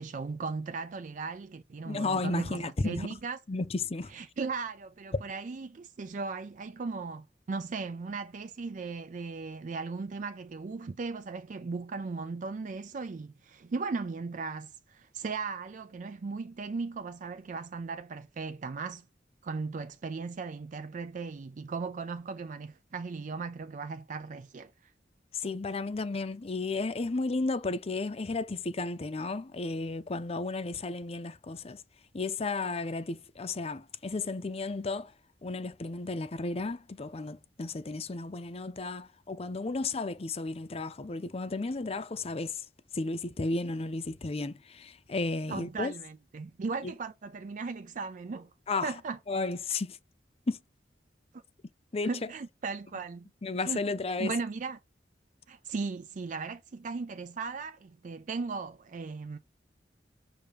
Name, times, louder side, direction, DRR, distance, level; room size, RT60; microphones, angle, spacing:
voice 1, 0.0-3.4 4.1-19.0 19.4-24.9 45.5-48.5 48.8-49.2 52.0-53.3 53.6-53.8 54.2-54.8 55.5-59.4, right 4 dB, 45° right, 0.4 m, -37 dB
voice 2, 1.9-3.0 3.5-4.1 25.3-31.8 32.1-35.1 35.4-42.6 42.9-45.9 46.8-46.9 48.7-48.9 49.3-50.0 50.5-50.6 51.9-52.1 53.4-54.3, left 3 dB, 35° left, 0.6 m, -33 dB
6.8 x 2.8 x 5.1 m
head